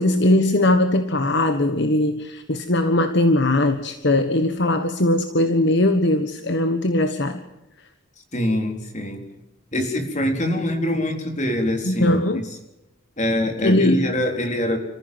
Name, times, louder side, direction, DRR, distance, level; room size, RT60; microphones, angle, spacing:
voice 1, 0.0-7.4 11.8-12.4 13.6-14.1, left 1 dB, 55° left, 8 dB, 1.4 m, -20 dB
voice 2, 8.3-9.2 9.7-12.2 13.2-14.8, left 1 dB, 35° left, 5 dB, 4.1 m, -24 dB
29.0 x 15.0 x 7.8 m, 0.97 s
head